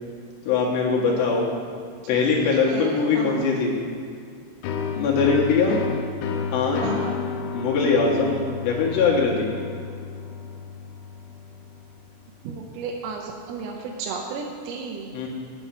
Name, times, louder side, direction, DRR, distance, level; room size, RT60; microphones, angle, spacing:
voice 1, 0.5-1.5 2.1-3.8 4.9-5.8 6.5-6.9 7.5-9.5 15.1-15.3, left 4 dB, 65° left, -4 dB, 3.3 m, -21 dB
voice 2, 2.7-3.5 6.8-7.2 12.5-15.2, right 4 dB, 85° right, 0 dB, 3.5 m, -33 dB
sound 1, 4.6-12.1, left 6 dB, 85° left, 2.8 m, -32 dB
9.1 x 7.3 x 8.5 m, 2.3 s
omnidirectional pair, 5.9 m